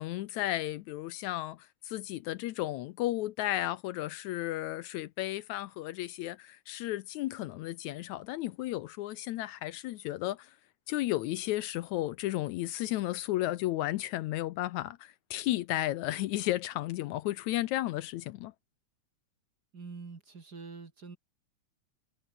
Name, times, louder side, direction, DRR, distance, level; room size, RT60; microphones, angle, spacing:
voice 1, 0.0-10.5 10.9-18.5, left 15 dB, 75° left, 1.9 m, -33 dB
voice 2, 19.7-21.2, right 4 dB, 35° right, 2.6 m, -45 dB
omnidirectional pair, 3.5 m